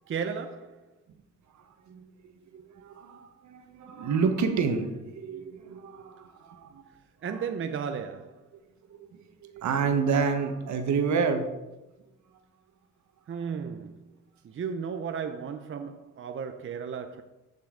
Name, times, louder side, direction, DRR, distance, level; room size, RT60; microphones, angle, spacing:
voice 1, 0.1-0.9 7.2-8.5 13.3-14.0 14.4-17.2, right 6 dB, 45° right, 0.7 m, -34 dB
voice 2, 1.9-6.8 9.0-11.5, right 5 dB, 70° right, 1.3 m, -29 dB
14.0 x 5.6 x 3.8 m
cardioid pair, 90°, 30 cm